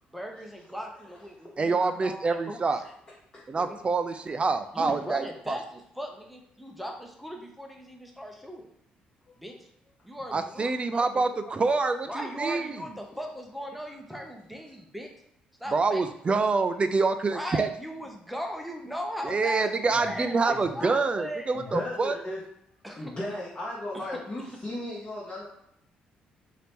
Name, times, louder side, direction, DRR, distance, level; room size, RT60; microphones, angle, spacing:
voice 1, 0.1-2.6 3.5-3.8 4.7-8.7 9.4-9.6 10.0-10.7 11.0-11.8 12.0-15.1 15.6-16.1 17.3-21.9 22.8-23.1 23.9-24.2, equal, ahead, 2 dB, 0.7 m, -38 dB
voice 2, 1.6-2.8 3.5-5.6 10.3-12.8 15.7-17.7 19.2-22.2, right 4 dB, 30° right, 9 dB, 0.4 m, -26 dB
voice 3, 20.5-21.0 21.5-22.4 23.0-25.5, left 1 dB, 30° left, -6 dB, 0.9 m, -36 dB
2.9 x 2.8 x 3.4 m, 0.73 s
supercardioid pair, 65°, 3 cm